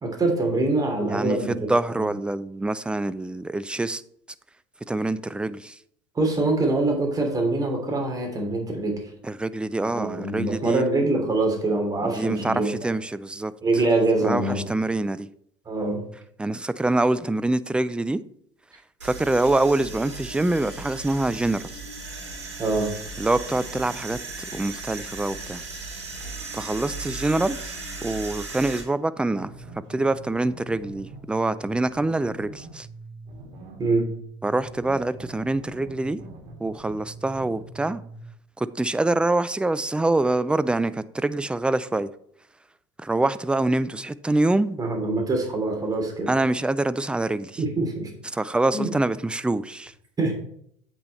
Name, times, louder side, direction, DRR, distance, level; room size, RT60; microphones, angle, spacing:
voice 1, 0.0-2.1 6.1-9.0 9.8-12.7 13.6-14.6 15.6-16.0 22.6-22.9 33.8-34.1 44.8-46.3 47.6-48.1 48.7-48.9 50.2-50.3, right 2 dB, 25° right, 3.1 m, -24 dB
voice 2, 1.1-4.0 4.9-5.8 9.2-10.8 12.0-13.5 14.2-15.3 16.4-18.2 19.0-21.7 23.2-24.2 24.5-25.6 26.5-27.7 28.0-29.5 29.9-32.9 34.4-36.2 36.6-38.0 38.6-42.1 43.0-44.8 46.3-47.6 48.3-49.9, right 2 dB, 5° right, 0.4 m, -25 dB
sound 1, 19.0-28.8, right 3 dB, 90° right, 2.9 m, -37 dB
sound 2, 29.3-38.2, right 2 dB, 60° right, 2.5 m, -43 dB
8.1 x 6.1 x 4.3 m
hypercardioid pair, 75°, 15 cm